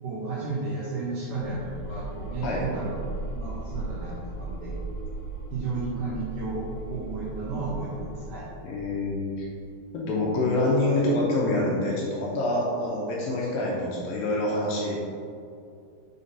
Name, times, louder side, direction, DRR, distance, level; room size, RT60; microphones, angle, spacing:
voice 1, 0.0-3.0 3.3-4.8 5.5-8.5, right 3 dB, 75° right, -6 dB, 2.0 m, -33 dB
sound 1, 1.4-10.2, right 2 dB, 50° left, 1.8 m, -37 dB
voice 2, 8.6-9.5 9.9-15.2, left 1 dB, 75° left, -3 dB, 2.2 m, -26 dB
6.5 x 3.8 x 4.0 m, 2.4 s
omnidirectional pair, 4.5 m